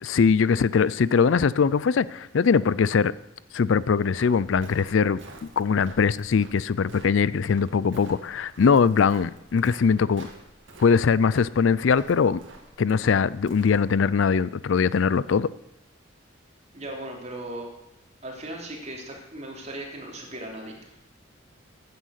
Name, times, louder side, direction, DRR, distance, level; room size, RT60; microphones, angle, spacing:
voice 1, 0.0-3.1 3.5-5.2 5.6-10.3 10.8-12.4 12.8-15.5, left 6 dB, 70° left, 19 dB, 0.4 m, -21 dB
Walk footsteps, 4.1-13.9, right 2 dB, 65° right, 2.5 m, -49 dB
voice 2, 16.7-17.7 18.2-21.0, right 1 dB, 35° right, 0 dB, 3.2 m, -37 dB
15.0 x 9.6 x 6.5 m, 0.87 s
head